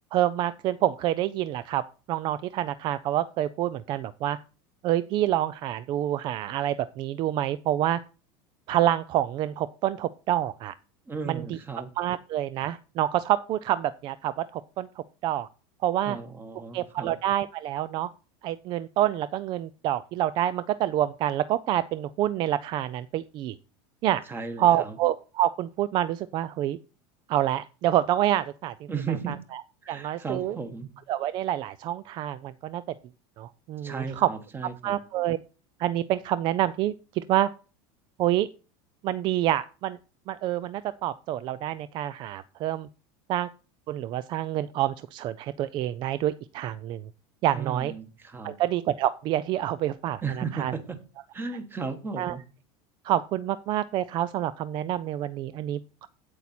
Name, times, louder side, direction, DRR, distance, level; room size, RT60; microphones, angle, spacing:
voice 1, 0.1-1.8 2.1-4.4 4.8-8.0 8.7-10.7 11.3-11.6 12.0-14.9 15.2-15.5 15.8-16.2 16.7-18.1 18.4-23.6 24.0-24.2 24.6-26.8 27.3-28.9 29.3-29.6 29.9-30.6 31.1-32.8 33.4-34.3 34.8-35.4 35.8-37.5 38.2-38.5 39.0-40.0 40.3-42.9 43.3-43.5 43.9-47.1 47.4-47.9 48.4-50.7 52.2-52.4 53.0-56.1, right 12 dB, 35° right, 16 dB, 0.4 m, -27 dB
voice 2, 11.1-11.9 16.0-17.2 24.3-24.9 28.9-29.4 29.8-30.9 33.8-35.0 47.5-48.5 50.2-51.0 51.3-52.4, right 5 dB, 15° right, 10 dB, 1.2 m, -35 dB
8.4 x 8.3 x 4.2 m, 0.34 s
supercardioid pair, 150°, 13 cm